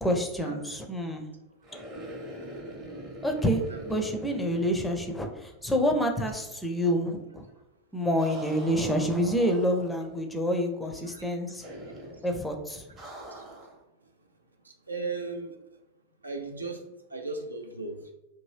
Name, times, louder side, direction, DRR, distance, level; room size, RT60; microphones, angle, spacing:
voice 1, 0.0-1.3 3.2-7.4 7.9-11.6 12.2-12.8, equal, 5° left, 3 dB, 0.5 m, -28 dB
sound 1, 1.6-5.8 6.0-6.1 8.2-10.2 11.6-12.3 13.0-13.8, right 1 dB, 30° right, 0.8 m, -43 dB
voice 2, 14.9-15.5 16.2-16.8 17.1-18.0, right 3 dB, 80° right, 3 dB, 0.4 m, -36 dB
2.7 x 2.6 x 3.1 m, 0.95 s
figure-of-eight pair, 90°, 0 cm